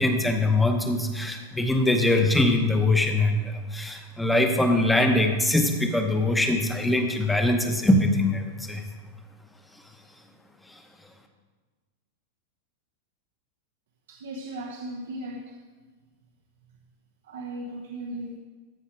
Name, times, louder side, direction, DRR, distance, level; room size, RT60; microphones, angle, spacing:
voice 1, 0.0-8.8 10.7-10.8, left 2 dB, 5° left, 4 dB, 0.8 m, -23 dB
voice 2, 14.1-15.6 17.2-18.4, right 1 dB, 85° right, 1 dB, 0.9 m, -36 dB
14.0 x 4.7 x 4.4 m, 1.4 s
supercardioid pair, 160°, 0 cm